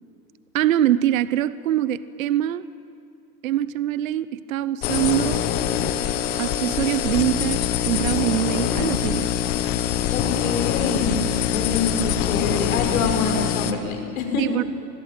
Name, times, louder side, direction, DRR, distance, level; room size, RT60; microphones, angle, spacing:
voice 1, 0.5-2.6 3.4-5.5 6.4-9.3 14.4-14.6, right 12 dB, 55° right, 16 dB, 0.9 m, -23 dB
sound 1, 4.8-13.7, left 10 dB, 20° left, 0.8 m, -24 dB
voice 2, 10.1-14.7, left 4 dB, 55° left, 4 dB, 5.8 m, -26 dB
25.0 x 21.0 x 9.1 m, 2.5 s
hypercardioid pair, 160°, 50 cm